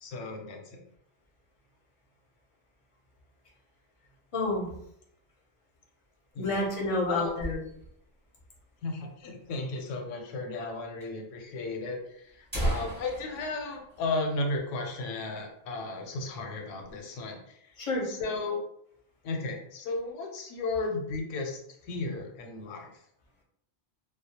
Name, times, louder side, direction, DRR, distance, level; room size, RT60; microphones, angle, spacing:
voice 1, 0.0-0.8 6.3-6.7 7.1-7.3 8.8-17.8 18.0-18.6 19.2-22.9, left 3 dB, 85° left, 3 dB, 0.9 m, -34 dB
voice 2, 4.3-4.7 6.4-7.6 17.8-18.1, left 2 dB, 40° left, -3 dB, 0.5 m, -29 dB
sound 1, 6.3-8.1 8.5-8.6 8.8-8.9 9.5-9.6 10.6-10.7 11.0-11.1 11.8-11.9 12.3-14.9 15.2-15.3 15.8-16.0 16.4-17.0, right 1 dB, 20° right, 0.8 m, -36 dB
2.3 x 2.0 x 2.7 m, 0.73 s
omnidirectional pair, 1.3 m